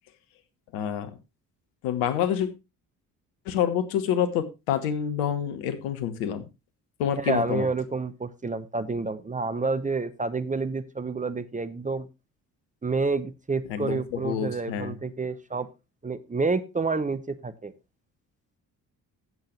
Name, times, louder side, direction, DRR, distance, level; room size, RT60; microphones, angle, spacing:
voice 1, 0.7-1.1 1.8-2.5 3.5-6.5 7.0-7.7 13.7-14.9, left 9 dB, 65° left, 11 dB, 1.3 m, -27 dB
voice 2, 7.2-12.1 12.8-15.7 16.0-17.7, right 3 dB, 15° right, 12 dB, 0.8 m, -29 dB
15.5 x 7.7 x 3.1 m, 0.25 s
figure-of-eight pair, 45°, 47 cm